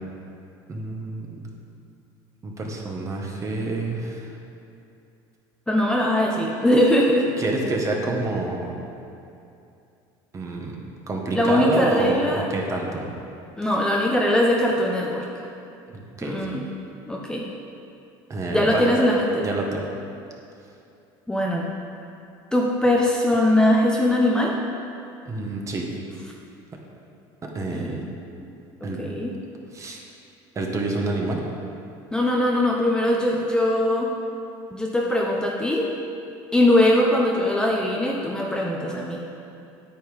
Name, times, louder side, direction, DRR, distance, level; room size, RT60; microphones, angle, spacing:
voice 1, 0.7-1.4 2.4-4.3 7.4-8.8 10.3-10.8 11.1-13.0 13.6-13.7 15.9-16.4 18.3-18.9 19.4-19.8 25.2-25.9 27.4-28.0 28.8-29.0 29.7-30.0 30.5-31.4, right 2 dB, 30° right, 0 dB, 1.7 m, -27 dB
voice 2, 5.7-7.3 11.3-12.5 13.6-15.3 16.2-16.7 17.1-17.5 18.5-19.5 21.3-21.6 22.5-24.5 27.7-28.0 28.8-29.3 32.1-34.1 34.7-35.9 36.5-39.2, left 1 dB, 5° left, -2 dB, 0.9 m, -21 dB
9.0 x 8.5 x 5.2 m, 2.6 s
supercardioid pair, 110°, 10 cm